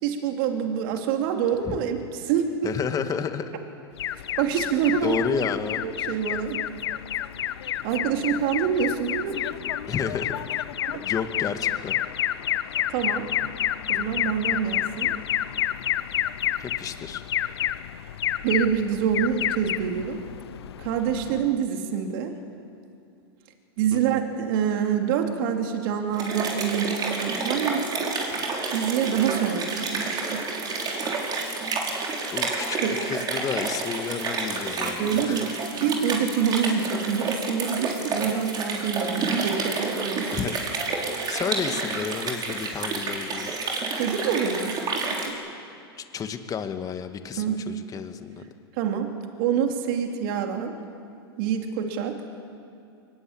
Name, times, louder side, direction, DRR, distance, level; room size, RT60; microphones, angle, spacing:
voice 1, 0.0-2.7 4.4-5.2 5.8-6.6 7.8-9.5 10.9-11.0 12.9-13.3 13.9-15.1 18.4-20.2 20.8-22.3 23.8-28.1 28.7-30.4 32.8-33.0 35.0-35.5 35.7-40.4 43.9-45.4 47.4-47.6 48.7-49.1 49.4-50.8 51.4-52.2, right 8 dB, 55° right, 4 dB, 2.9 m, -26 dB
voice 2, 2.6-3.6 5.0-5.8 9.9-10.3 11.0-12.0 16.6-17.2 23.9-24.2 32.3-32.8 33.1-35.4 40.3-40.6 41.3-43.5 46.1-48.4, left 6 dB, 25° left, 8 dB, 2.0 m, -31 dB
Alarm, 4.0-21.6, left 11 dB, 75° left, 0.8 m, -29 dB
sound 1, 26.1-45.3, right 3 dB, 30° right, 5.2 m, -29 dB
23.5 x 20.5 x 8.9 m, 2.5 s
hypercardioid pair, 110°, 13 cm